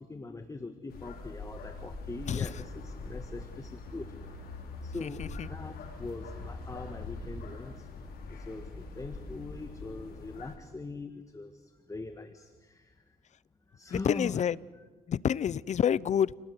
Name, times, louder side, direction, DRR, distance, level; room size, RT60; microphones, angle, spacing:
voice 1, 0.0-4.1 4.8-5.2 5.5-7.9 8.3-13.0 13.7-14.4 14.8-14.9, left 3 dB, 20° left, 1.7 m, -42 dB
sound 1, 0.9-10.6, left 3 dB, 70° left, 5.5 m, -43 dB
voice 2, 5.0-5.5 13.9-14.6 15.1-16.3, left 9 dB, 45° left, 0.7 m, -28 dB
29.0 x 18.5 x 8.1 m
cardioid pair, 85°, 16 cm